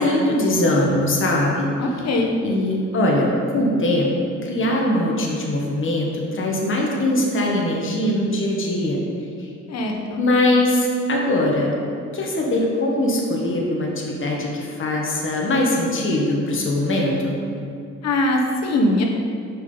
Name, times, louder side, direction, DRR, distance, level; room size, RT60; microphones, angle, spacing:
voice 1, 0.0-1.7 2.4-4.1 4.4-9.0 9.4-9.5 10.2-11.7 12.1-17.4, left 1 dB, 40° left, -2 dB, 1.4 m, -21 dB
voice 2, 1.8-2.3 9.7-10.2 18.0-19.0, left 1 dB, 60° left, 1 dB, 1.1 m, -21 dB
7.3 x 5.6 x 3.9 m, 2.4 s
cardioid pair, 90°, 30 cm